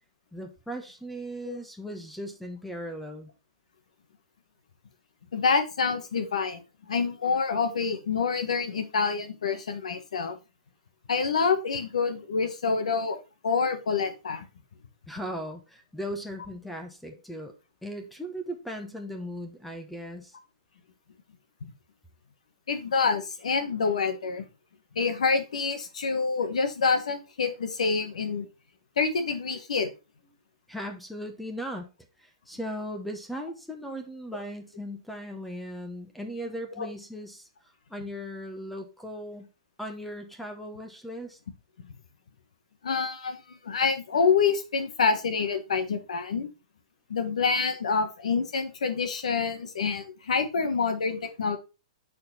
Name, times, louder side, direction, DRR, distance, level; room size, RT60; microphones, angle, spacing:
voice 1, 0.3-3.3 15.1-17.5 17.8-20.3 30.7-31.9 32.2-37.5 37.9-39.5 39.8-41.4, equal, ahead, 4 dB, 1.0 m, -38 dB
voice 2, 5.3-10.4 11.1-13.2 13.4-14.4 22.7-24.4 24.9-28.5 29.0-29.9 36.8-36.9 42.8-46.5 47.1-51.6, left 5 dB, 90° left, 7 dB, 1.5 m, -27 dB
6.3 x 4.5 x 4.2 m, 0.30 s
hypercardioid pair, 145°, 3 cm